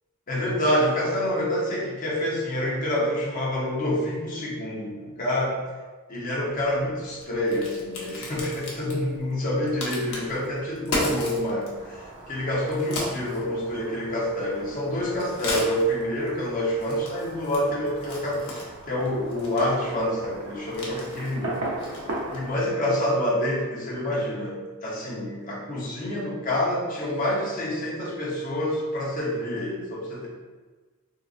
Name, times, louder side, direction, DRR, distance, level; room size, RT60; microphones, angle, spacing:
voice 1, 0.3-5.6 6.1-21.9 22.3-30.3, left 1 dB, 40° left, -5 dB, 0.9 m, -27 dB
Crack, 6.5-22.6, left 1 dB, 65° left, 0.8 m, -38 dB
Fireworks, 11.7-22.7, right 2 dB, 90° right, 0.7 m, -39 dB
3.7 x 2.4 x 2.4 m, 1.4 s
head